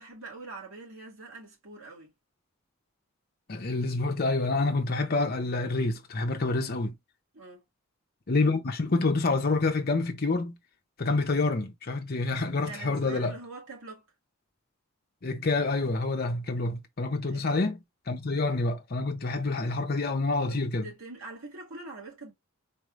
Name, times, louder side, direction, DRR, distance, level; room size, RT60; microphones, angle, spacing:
voice 1, 0.0-2.1 7.3-7.6 12.7-14.1 17.2-17.6 20.4-22.3, right 3 dB, 80° right, 2.4 m, -44 dB
voice 2, 3.5-6.9 8.3-10.6 11.0-13.4 15.2-17.8 18.1-20.9, left 3 dB, 45° left, 0.7 m, -27 dB
4.2 x 3.2 x 2.5 m
head